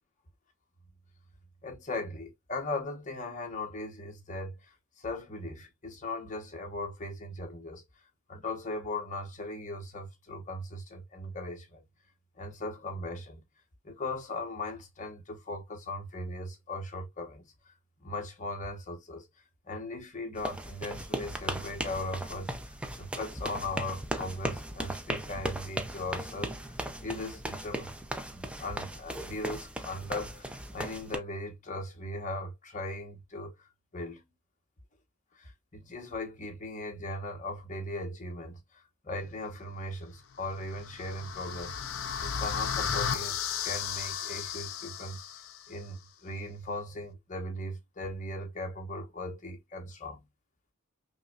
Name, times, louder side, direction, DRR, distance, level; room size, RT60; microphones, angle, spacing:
voice 1, 1.6-7.8 8.3-11.8 12.4-13.4 13.8-17.4 18.0-19.3 19.7-22.5 23.0-26.5 27.0-27.9 28.3-33.6 33.9-34.2 35.3-38.6 39.0-41.8 42.2-45.2 45.7-50.2, left 2 dB, 35° left, 1.1 m, -38 dB
sound 1, 20.4-31.2, right 1 dB, 5° right, 0.4 m, -37 dB
sound 2, 40.5-45.6, left 7 dB, 75° left, 0.5 m, -34 dB
5.5 x 2.2 x 2.4 m
head